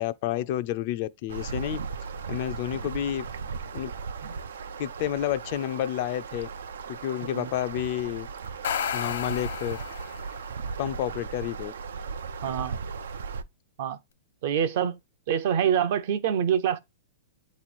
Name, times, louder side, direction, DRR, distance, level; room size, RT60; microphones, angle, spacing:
voice 1, 0.0-1.8 2.3-3.3 3.7-3.9 4.8-6.5 6.9-8.3 8.9-9.8 10.8-11.7, left 12 dB, 40° left, 0.4 m, -30 dB
sound 1, 1.3-13.4, right 5 dB, 90° right, 0.6 m, -37 dB
sound 2, 8.4-10.4, left 8 dB, 80° left, 1.1 m, -32 dB
voice 2, 12.4-12.8 13.8-14.0 14.4-15.0 15.3-16.8, right 9 dB, 50° right, 0.6 m, -25 dB
8.0 x 3.0 x 4.2 m
hypercardioid pair, 160°, 0 cm